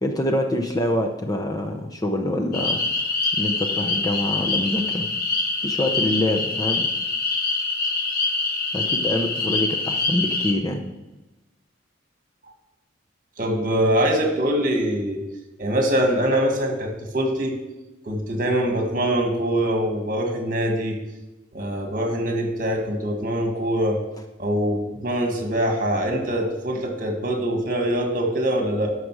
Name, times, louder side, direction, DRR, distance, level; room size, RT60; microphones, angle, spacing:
voice 1, 0.0-2.8 3.3-5.1 5.6-6.9 8.7-10.8, left 1 dB, 20° left, 2 dB, 0.7 m, -25 dB
sound 1, 2.5-10.5, left 3 dB, 50° left, 1.0 m, -25 dB
voice 2, 13.4-15.2 15.6-17.6 18.0-21.0 21.5-24.0 24.4-28.9, right 1 dB, 45° right, 2 dB, 1.8 m, -23 dB
11.5 x 6.4 x 4.8 m, 1.0 s
head